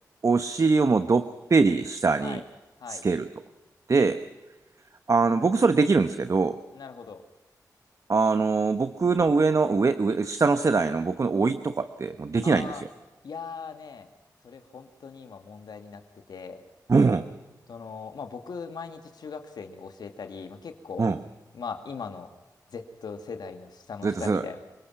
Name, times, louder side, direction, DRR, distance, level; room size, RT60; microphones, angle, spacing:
voice 1, 0.2-2.4 2.9-3.3 3.9-4.2 5.1-6.6 8.1-12.9 16.9-17.3 21.0-21.2 24.0-24.4, right 4 dB, 50° right, 10 dB, 1.0 m, -23 dB
voice 2, 6.7-7.2 12.4-12.8 13.2-14.1 14.4-16.0 16.3-16.6 17.7-21.1 21.5-22.3 22.7-24.6, left 5 dB, 80° left, 7 dB, 2.3 m, -39 dB
28.0 x 18.5 x 5.8 m, 1.1 s
cardioid pair, 55°, 7 cm